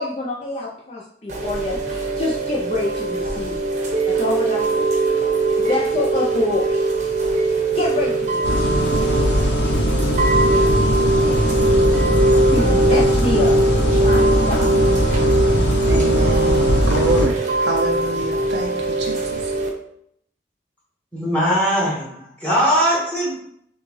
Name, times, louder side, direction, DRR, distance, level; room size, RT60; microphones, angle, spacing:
voice 1, 0.0-3.6 4.1-4.9 5.6-6.8 7.7-8.6 10.5-11.4 12.5-13.5 14.0-14.7, left 3 dB, 35° left, -4 dB, 0.5 m, -26 dB
Chime / Rain, 1.3-19.7, right 2 dB, 40° right, 0.8 m, -21 dB
sound 1, 8.4-17.3, equal, 85° left, 0.8 m, -20 dB
voice 2, 15.9-19.5, right 2 dB, 80° right, 1 dB, 0.4 m, -26 dB
voice 3, 21.1-23.3, equal, 10° left, -6 dB, 1.6 m, -20 dB
6.3 x 2.3 x 3.2 m, 0.69 s
head